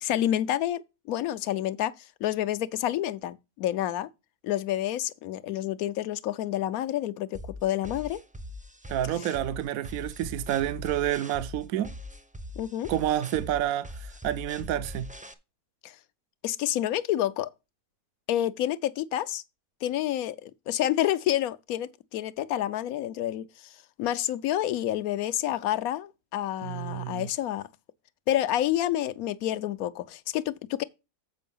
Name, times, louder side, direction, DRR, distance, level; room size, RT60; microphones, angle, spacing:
voice 1, 0.0-1.9 2.2-4.1 4.4-8.2 12.6-12.9 15.8-16.0 16.4-17.5 18.3-19.4 19.8-23.7 24.0-27.7 28.3-30.8, left 12 dB, 75° left, 1.0 m, -29 dB
sound 1, 7.3-15.3, left 1 dB, 10° right, 0.4 m, -41 dB
voice 2, 8.9-11.9 12.9-15.1 26.6-27.3, right 12 dB, 70° right, 1.0 m, -29 dB
7.7 x 5.4 x 5.4 m
omnidirectional pair, 1.6 m